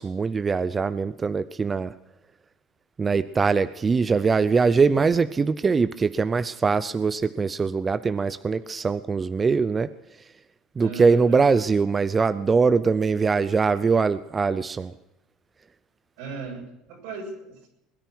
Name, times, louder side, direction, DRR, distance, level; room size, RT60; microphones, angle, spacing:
voice 1, 0.0-1.9 3.0-9.9 10.8-14.9, right 5 dB, 25° right, 14 dB, 0.5 m, -22 dB
voice 2, 10.8-11.4 16.2-17.7, right 4 dB, 80° right, 0 dB, 6.8 m, -37 dB
21.0 x 10.5 x 6.1 m, 0.85 s
supercardioid pair, 115°, 0 cm